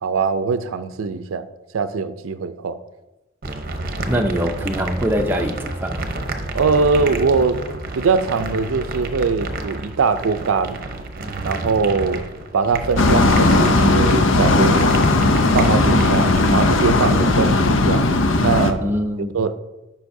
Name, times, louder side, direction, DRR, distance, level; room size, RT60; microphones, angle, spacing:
voice 1, 0.0-1.5 1.7-2.8 6.5-7.6 7.9-10.8 11.4-12.2 12.5-15.0 15.5-18.1 18.4-18.8 19.3-19.6, right 4 dB, 90° right, 0.5 m, -21 dB
sound 1, 3.4-16.8, right 2 dB, 45° right, 0.8 m, -29 dB
voice 2, 4.1-6.0 18.8-19.3, equal, 10° right, 0.6 m, -23 dB
sound 2, 13.0-18.7, left 2 dB, 75° left, 0.6 m, -16 dB
12.5 x 5.6 x 2.7 m
head